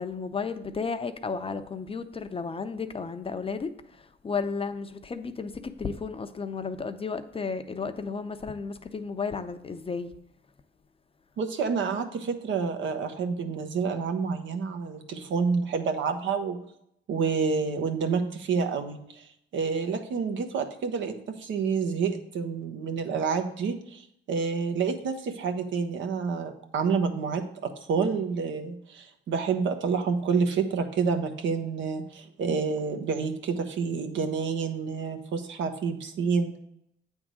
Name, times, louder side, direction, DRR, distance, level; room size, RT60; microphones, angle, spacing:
voice 1, 0.0-3.7 4.0-10.1, left 5 dB, 30° left, 0.6 m, -33 dB
voice 2, 11.4-16.6 17.1-27.4 27.9-36.6, right 5 dB, 70° right, 1.1 m, -28 dB
8.1 x 3.6 x 6.2 m
cardioid pair, 90°, 20 cm